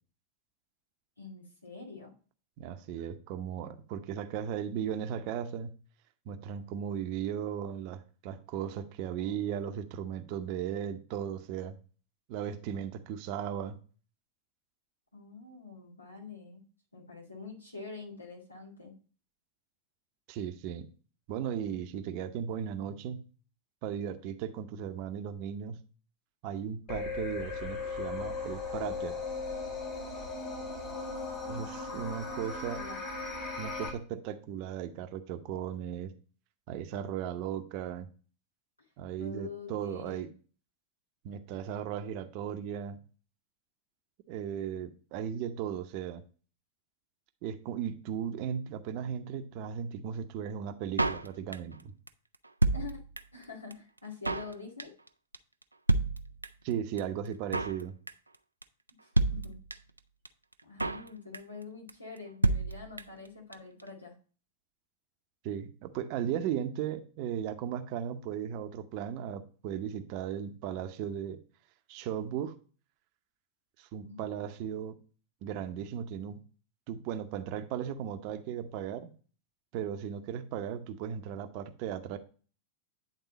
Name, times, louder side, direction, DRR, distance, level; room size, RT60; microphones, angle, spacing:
voice 1, 1.2-2.1 15.1-16.6 16.9-18.9 31.4-33.0 39.2-40.3 52.7-53.0 53.3-54.9 59.0-59.6 60.6-64.1 74.0-74.5, left 4 dB, 80° left, -1 dB, 2.1 m, -46 dB
voice 2, 2.6-5.7 6.3-11.8 12.3-13.8 20.3-20.9 21.3-23.2 23.8-25.8 26.4-29.1 31.5-32.8 33.6-36.1 36.7-38.1 39.0-40.3 41.2-43.0 44.3-46.2 47.4-51.9 56.6-57.9 65.4-71.4 71.9-72.5 73.8-75.0 75.4-76.4 76.9-79.1 79.7-82.2, right 9 dB, 45° right, 9 dB, 0.7 m, -36 dB
sound 1, 26.9-33.9, left 3 dB, 35° left, 3.3 m, -37 dB
Drum kit, 51.0-51.8 52.1-52.2 52.3-53.4 53.7-53.8 54.0-54.5 54.8-55.1 55.3-55.4 55.6-55.7 55.9-56.7 57.0-57.1 57.3-57.8 58.1-58.4 58.6-58.7 58.9-59.0 59.2-60.0 60.3-60.4 60.5-61.1 61.3-61.6 61.9-62.0 62.2-62.3 62.4-63.3 63.5-63.6 63.8-63.9, right 2 dB, 85° right, 0.4 m, -29 dB
9.6 x 3.8 x 4.0 m, 0.39 s
figure-of-eight pair, 90°, 0 cm